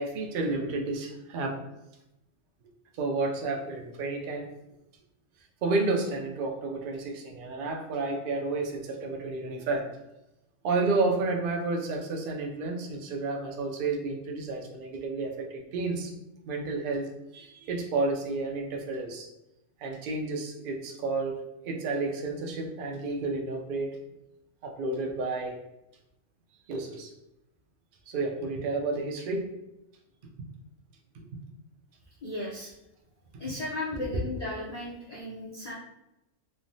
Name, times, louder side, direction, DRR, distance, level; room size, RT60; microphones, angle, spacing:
voice 1, 0.0-1.6 3.0-4.5 5.6-10.0 10.6-16.1 16.5-19.3 19.8-21.4 21.6-24.0 24.6-25.6 26.7-27.1 28.1-29.5 31.1-31.4, right 3 dB, 80° right, 2 dB, 0.4 m, -31 dB
voice 2, 32.2-32.7 33.4-35.7, left 2 dB, 85° left, -6 dB, 0.3 m, -35 dB
3.1 x 2.1 x 2.6 m, 0.91 s
omnidirectional pair, 1.4 m